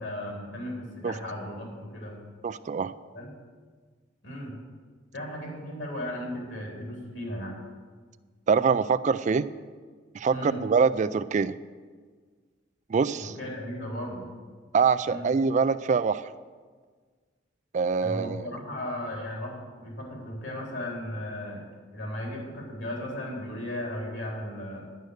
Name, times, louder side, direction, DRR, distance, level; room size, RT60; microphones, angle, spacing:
voice 1, 0.0-2.2 3.1-3.3 4.2-4.6 5.1-7.6 10.3-10.6 13.2-14.3 15.0-15.3 18.0-21.6 21.9-24.9, left 1 dB, 70° left, -1 dB, 3.7 m, -36 dB
voice 2, 2.4-2.9 8.5-9.5 10.1-11.5 12.9-13.3 14.7-16.3 17.7-18.4, right 5 dB, 40° right, 13 dB, 0.3 m, -24 dB
10.5 x 9.5 x 6.5 m, 1.5 s
head